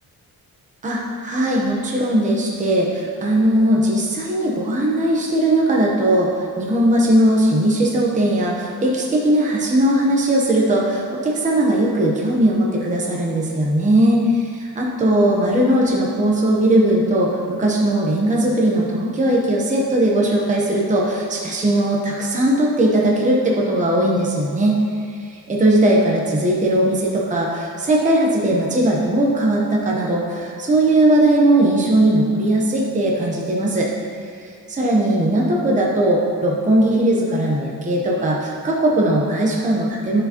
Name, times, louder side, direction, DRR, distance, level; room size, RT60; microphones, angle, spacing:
voice 1, 0.8-24.8 25.1-33.9 34.7-40.2, right 1 dB, 20° right, -3 dB, 0.8 m, -18 dB
12.0 x 4.8 x 2.9 m, 2.4 s
wide cardioid pair, 165°, 38 cm